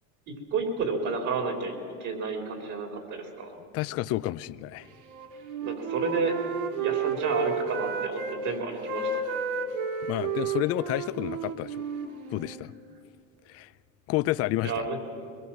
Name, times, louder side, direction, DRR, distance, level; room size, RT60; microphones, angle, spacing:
voice 1, 0.3-3.5 5.6-6.5 6.8-9.2 14.6-15.4, right 4 dB, 45° right, 4.3 m, -31 dB
voice 2, 3.7-4.9 10.1-11.8 12.3-12.7 13.5-13.7 14.1-14.7, left 16 dB, 40° left, 0.5 m, -30 dB
Wind instrument woodwind instrument, 5.0-8.4 8.7-12.6, right 5 dB, 80° right, 2.5 m, -32 dB
23.5 x 21.0 x 7.5 m
supercardioid pair, 135°, 40 cm